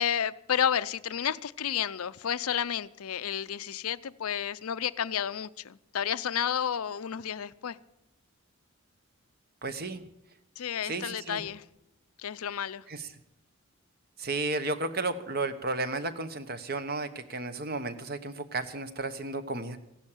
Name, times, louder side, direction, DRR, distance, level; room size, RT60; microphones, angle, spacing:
voice 1, 0.0-7.8 10.6-11.6 12.2-12.8, left 8 dB, 85° left, 16 dB, 0.6 m, -31 dB
voice 2, 9.6-10.0 10.8-11.4 12.9-13.1 14.2-19.8, right 3 dB, 45° right, 11 dB, 1.1 m, -33 dB
15.5 x 11.5 x 7.4 m, 0.84 s
head